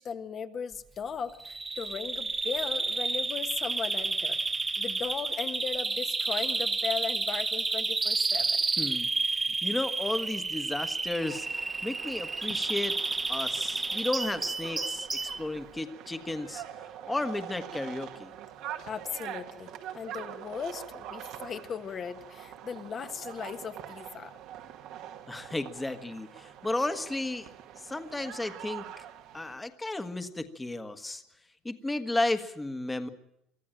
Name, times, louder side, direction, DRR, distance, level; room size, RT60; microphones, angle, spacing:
voice 1, 0.0-8.6 18.8-24.3, left 6 dB, 35° left, 8 dB, 1.3 m, -37 dB
Bird vocalization bird call bird song, 1.4-15.4, right 3 dB, 15° right, 0.8 m, -31 dB
voice 2, 8.8-13.0 13.3-18.3 25.3-27.5 27.8-28.9 29.3-31.2 31.6-33.1, left 2 dB, 10° left, 9 dB, 1.5 m, -33 dB
sound 1, 11.2-29.6, right 10 dB, 65° right, 1.8 m, -44 dB
24.0 x 13.5 x 8.9 m, 0.81 s
cardioid pair, 125°, 0 cm